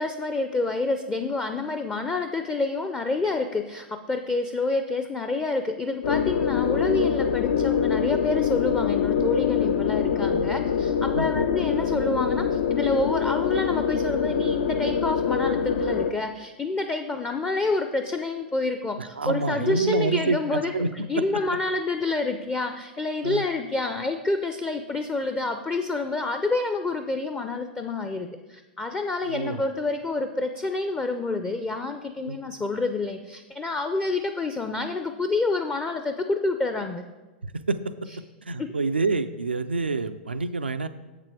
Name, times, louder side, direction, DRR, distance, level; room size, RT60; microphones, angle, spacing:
voice 1, 0.0-37.0 38.6-38.7, left 3 dB, 15° left, 7 dB, 0.5 m, -28 dB
sound 1, 6.0-16.1, left 7 dB, 65° left, 0.5 m, -24 dB
voice 2, 19.0-21.2 23.2-23.5 29.3-29.6 32.2-32.4 37.4-37.9 38.4-40.9, right 3 dB, 90° right, 10 dB, 0.3 m, -27 dB
7.3 x 6.7 x 4.7 m, 1.2 s
figure-of-eight pair, 100°, 6 cm